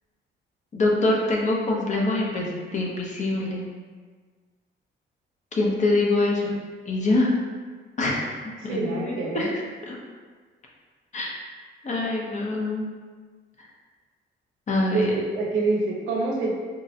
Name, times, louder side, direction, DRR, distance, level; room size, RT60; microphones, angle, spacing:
voice 1, 0.7-3.6 5.5-6.6 6.9-7.3 8.0-10.0 11.1-11.3 11.8-12.9 13.6-13.7 14.7-15.1, left 2 dB, 40° left, -2 dB, 0.7 m, -25 dB
voice 2, 8.7-9.5 14.9-16.5, right 3 dB, 90° right, -1 dB, 0.6 m, -26 dB
3.6 x 2.1 x 2.7 m, 1.5 s
cardioid pair, 90°, 20 cm